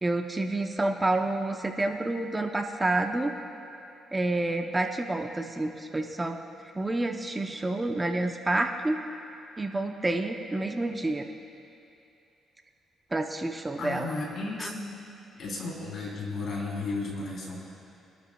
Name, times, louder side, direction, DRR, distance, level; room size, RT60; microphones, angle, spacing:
voice 1, 0.0-3.3 4.1-6.4 6.7-9.0 9.6-11.3 13.1-14.1 14.6-14.7, right 2 dB, 20° right, 4 dB, 0.8 m, -28 dB
voice 2, 13.8-15.0 15.4-17.6, left 3 dB, 65° left, -3 dB, 3.8 m, -34 dB
25.5 x 12.0 x 2.4 m, 2.7 s
cardioid pair, 90°, 0 cm